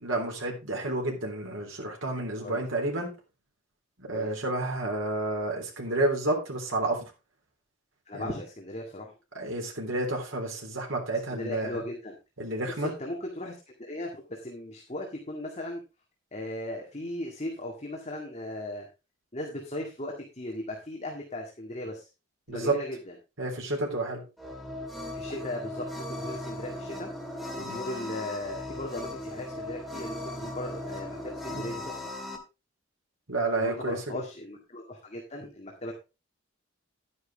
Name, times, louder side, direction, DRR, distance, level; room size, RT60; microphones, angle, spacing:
voice 1, 0.0-3.1 4.0-7.0 8.2-8.3 9.4-11.8 12.4-12.9 22.5-22.8 23.4-24.2 27.6-27.8 31.5-31.7 33.3-34.0, right 2 dB, 80° right, 0 dB, 3.5 m, -30 dB
voice 2, 8.1-9.1 11.3-12.2 12.7-15.8 16.3-18.9 19.3-22.1 22.5-23.1 25.1-27.1 27.6-32.0 33.6-35.9, left 1 dB, 35° left, 0 dB, 2.0 m, -37 dB
sound 1, 24.4-32.4, left 1 dB, ahead, 2.0 m, -38 dB
11.0 x 9.6 x 3.5 m, 0.28 s
head